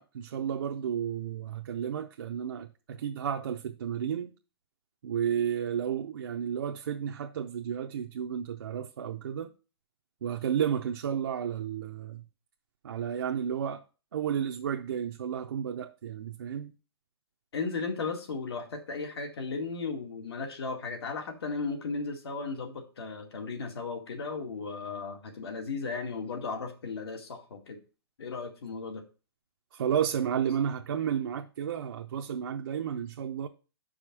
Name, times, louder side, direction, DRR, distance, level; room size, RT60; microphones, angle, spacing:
voice 1, 0.0-4.3 5.0-9.5 10.2-12.2 12.8-13.8 14.1-16.7 29.7-33.5, right 8 dB, 55° right, 0.6 m, -32 dB
voice 2, 17.5-27.8 28.2-29.0, left 4 dB, 70° left, 2.1 m, -35 dB
6.3 x 5.0 x 6.0 m
hypercardioid pair, 180°, 14 cm